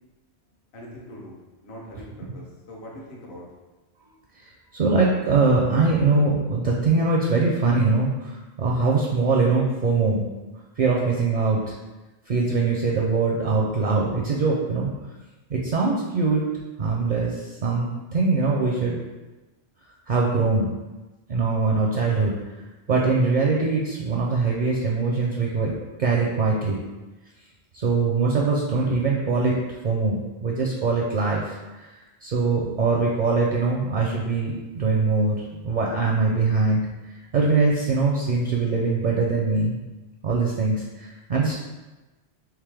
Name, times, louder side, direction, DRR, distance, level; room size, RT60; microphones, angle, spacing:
voice 1, 0.7-3.4, equal, 70° left, -3 dB, 1.1 m, -42 dB
voice 2, 4.4-10.3 10.8-11.7 12.3-14.9 15.5-16.5 16.8-19.0 20.1-20.7 21.3-22.6 22.9-26.8 27.7-29.6 29.8-32.0 32.2-39.8 40.2-41.6, right 3 dB, 55° right, -2 dB, 0.5 m, -22 dB
3.7 x 2.9 x 3.3 m, 1.2 s
omnidirectional pair, 1.1 m